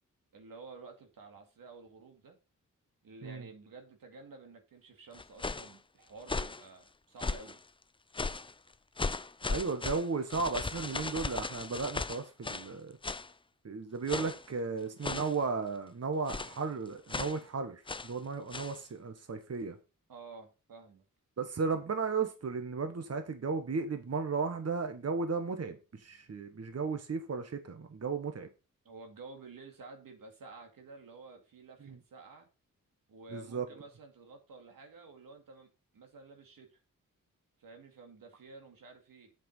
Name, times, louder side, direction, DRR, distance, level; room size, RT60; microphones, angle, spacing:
voice 1, 0.3-2.4 3.0-7.6 20.1-21.0 28.8-32.5 33.1-36.8 37.6-39.3, right 3 dB, 85° right, 2.2 m, -51 dB
sound 1, 5.1-5.7 6.2-6.6 7.2-7.6 8.1-8.5 9.0-12.7 13.0-13.3 14.1-14.5 15.0-15.4 16.3-16.6 17.1-17.4 17.9-18.1 18.5-18.8, left 3 dB, 15° left, 0.4 m, -37 dB
voice 2, 9.5-13.0 13.6-19.8 21.4-28.5 31.8-32.0 33.3-33.6, right 4 dB, 50° right, 1.3 m, -35 dB
7.7 x 6.0 x 5.4 m
cardioid pair, 70°, 33 cm